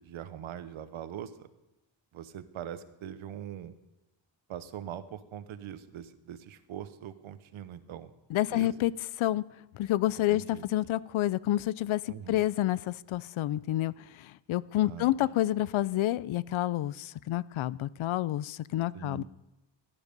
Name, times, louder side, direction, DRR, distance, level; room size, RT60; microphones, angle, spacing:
voice 1, 0.0-1.5 2.1-3.7 4.5-8.1 8.5-8.7 10.3-10.6 12.1-12.4 14.8-15.1 18.9-19.3, right 10 dB, 85° right, 12 dB, 1.0 m, -42 dB
voice 2, 8.3-8.9 9.2-9.4 9.7-19.2, left 15 dB, 85° left, 19 dB, 0.6 m, -29 dB
17.5 x 11.0 x 5.3 m, 0.98 s
wide cardioid pair, 175°, 47 cm